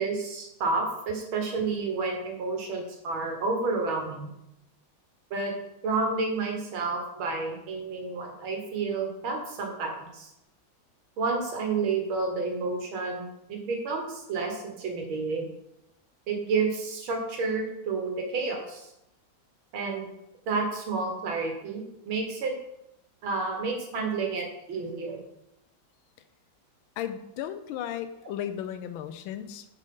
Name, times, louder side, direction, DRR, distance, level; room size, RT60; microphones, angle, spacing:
voice 1, 0.0-4.3 5.3-5.5 5.8-10.3 11.2-15.5 16.3-18.9 19.7-20.1 20.5-22.5 23.2-25.2, right 4 dB, 85° right, 2 dB, 2.1 m, -30 dB
voice 2, 27.0-29.7, left 10 dB, 90° left, 10 dB, 1.4 m, -35 dB
7.4 x 5.1 x 3.8 m, 0.83 s
omnidirectional pair, 2.2 m